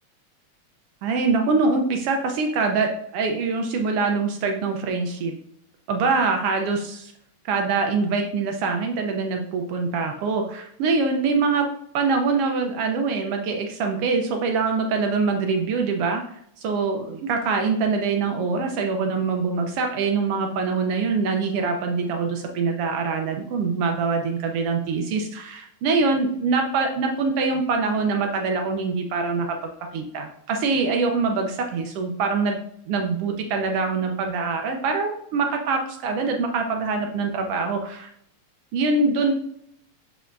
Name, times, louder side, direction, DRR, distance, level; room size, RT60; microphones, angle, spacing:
voice 1, 1.0-5.3 5.9-7.1 7.4-11.7 11.9-32.6 32.9-38.1 38.7-39.3, right 4 dB, 85° right, 3 dB, 1.3 m, -24 dB
7.1 x 5.6 x 2.5 m, 0.71 s
omnidirectional pair, 3.4 m